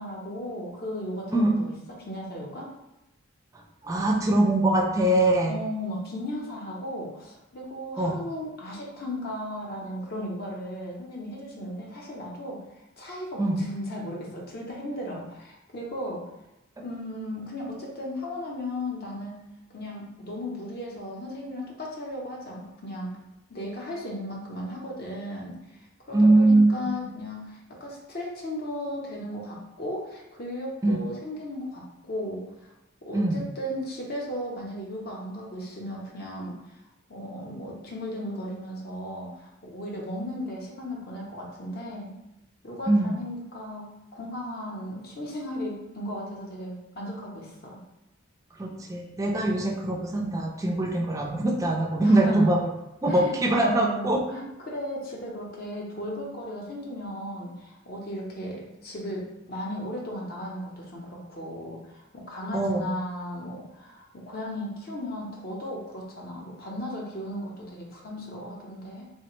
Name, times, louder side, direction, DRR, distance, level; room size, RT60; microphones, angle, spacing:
voice 1, 0.0-2.7 5.5-12.6 13.0-16.2 16.8-19.4 19.7-23.1 23.5-25.6 26.1-32.7 33.1-36.6 37.1-42.1 42.6-47.8 52.0-52.5 53.1-69.1, left 1 dB, 45° left, -2 dB, 0.6 m, -36 dB
voice 2, 1.3-1.6 3.8-5.5 8.0-8.2 13.4-13.6 26.1-27.0 30.8-31.0 33.1-33.4 42.9-43.1 48.6-52.6 53.0-54.2 62.5-62.8, right 1 dB, 15° right, 0 dB, 0.3 m, -22 dB
3.2 x 2.1 x 3.0 m, 0.94 s
head